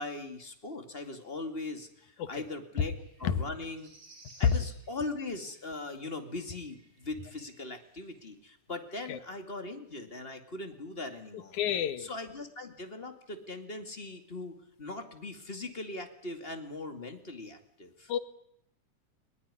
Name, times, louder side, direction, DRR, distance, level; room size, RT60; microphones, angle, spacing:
voice 1, 0.0-2.9 3.2-3.9 4.4-11.6 12.0-18.1, left 2 dB, 20° left, 6 dB, 2.1 m, -40 dB
sound 1, 2.9-6.2 6.5-8.3, right 2 dB, 70° right, 7.0 m, -59 dB
voice 2, 11.6-12.1 18.1-18.2, left 9 dB, 80° left, 12 dB, 2.7 m, -30 dB
21.5 x 21.0 x 9.8 m, 0.70 s
omnidirectional pair, 3.4 m